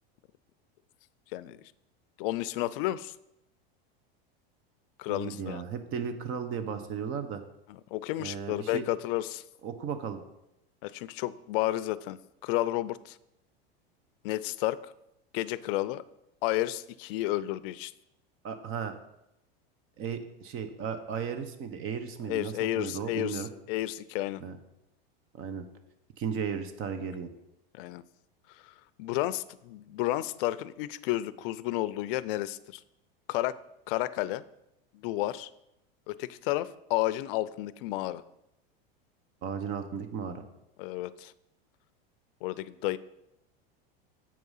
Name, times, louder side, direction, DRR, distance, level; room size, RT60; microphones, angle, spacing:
voice 1, 2.2-3.1 5.0-5.6 7.7-9.4 10.8-12.2 12.4-13.2 14.2-14.9 15.3-16.0 16.4-17.9 22.3-24.4 27.7-28.0 28.6-28.7 29.0-32.8 33.3-33.6 33.9-34.4 34.9-35.5 36.1-38.2 40.8-41.3 42.4-43.0, left 16 dB, 65° left, 17 dB, 0.5 m, -31 dB
voice 2, 5.1-7.4 8.2-8.8 9.6-10.2 18.4-18.9 20.0-23.5 24.4-24.6 25.4-25.7 26.2-27.3 39.4-40.4, right 7 dB, 45° right, 9 dB, 0.9 m, -35 dB
7.4 x 4.7 x 5.6 m, 0.85 s
supercardioid pair, 115°, 30 cm